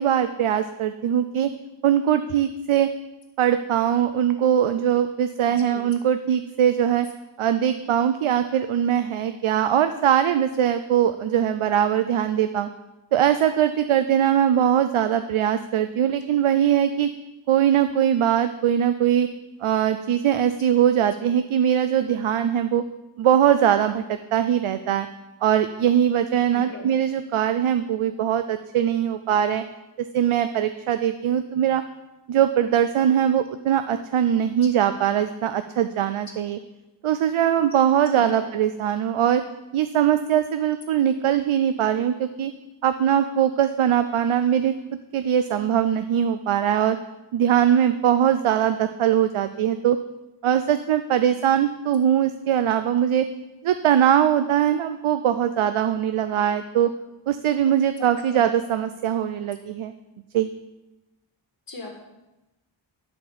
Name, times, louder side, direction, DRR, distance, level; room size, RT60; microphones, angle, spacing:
voice 1, 0.0-1.5 1.8-2.9 3.4-7.1 7.4-12.7 13.1-17.1 17.5-19.3 19.6-22.8 23.2-25.1 25.4-29.6 30.1-31.8 32.3-36.6 37.0-39.4 39.7-42.5 42.8-44.7 45.1-47.0 47.3-50.0 50.4-53.3 53.6-56.9 57.3-59.9 60.3-60.5, right 9 dB, 85° right, 10 dB, 0.6 m, -21 dB
voice 2, 26.5-26.9 38.1-38.5 58.0-58.5 61.7-61.9, left 3 dB, 45° left, 1 dB, 2.0 m, -37 dB
11.0 x 4.5 x 7.4 m, 1.0 s
wide cardioid pair, 105°, 48 cm